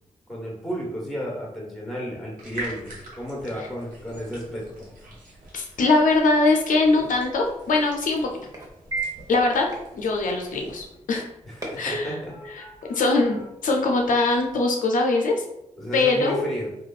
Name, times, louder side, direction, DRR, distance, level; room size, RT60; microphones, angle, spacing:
voice 1, 0.3-4.9 11.5-12.3 15.8-16.7, equal, ahead, -3 dB, 1.2 m, -33 dB
sound 1, 2.4-10.9, right 1 dB, 75° right, 1.0 m, -44 dB
voice 2, 5.5-8.3 9.3-9.7 9.9-11.2 11.8-12.2 12.5-12.6 12.9-15.4 15.9-16.4, left 3 dB, 75° left, 1 dB, 0.4 m, -22 dB
sound 2, 6.8-14.6, right 2 dB, 25° right, 0.9 m, -39 dB
3.0 x 2.3 x 2.3 m, 0.85 s
supercardioid pair, 40°, 14 cm